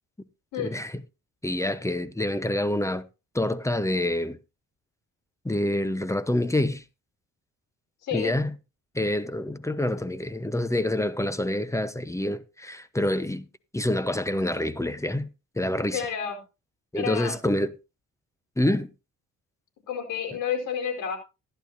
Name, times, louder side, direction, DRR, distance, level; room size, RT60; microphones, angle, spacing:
voice 1, 0.6-0.9 1.4-3.0 3.3-4.4 5.4-6.8 8.1-8.5 8.9-13.4 13.7-15.3 15.6-16.0 16.9-17.7 18.6-18.9, left 1 dB, 10° left, 1.0 m, -27 dB
voice 2, 8.0-8.4 15.9-16.4 16.9-17.4 19.9-21.2, left 7 dB, 85° left, 4.6 m, -30 dB
14.5 x 11.5 x 2.8 m
cardioid pair, 90°, 30 cm